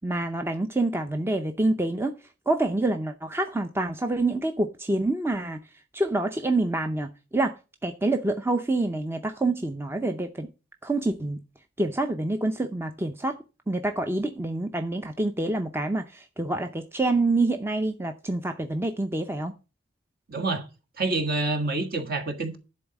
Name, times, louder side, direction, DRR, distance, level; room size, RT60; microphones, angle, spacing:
voice 1, 0.0-2.2 2.5-5.6 5.9-7.5 7.8-10.5 10.8-11.4 11.8-13.4 13.7-19.5, right 2 dB, 10° right, 0.6 m, -27 dB
voice 2, 20.3-20.7 21.0-22.6, right 3 dB, 50° right, 1.6 m, -27 dB
10.5 x 4.0 x 7.0 m
head